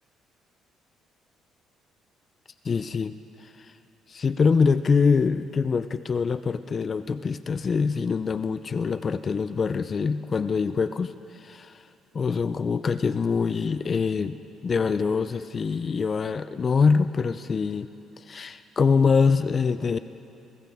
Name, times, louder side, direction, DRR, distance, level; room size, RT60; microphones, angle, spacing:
voice 1, 2.6-3.1 3.6-3.7 4.1-11.8 12.1-14.4 14.6-17.9 18.2-20.0, left 5 dB, 35° left, 11 dB, 0.4 m, -24 dB
24.0 x 16.0 x 3.5 m, 2.7 s
cardioid pair, 110°, 0 cm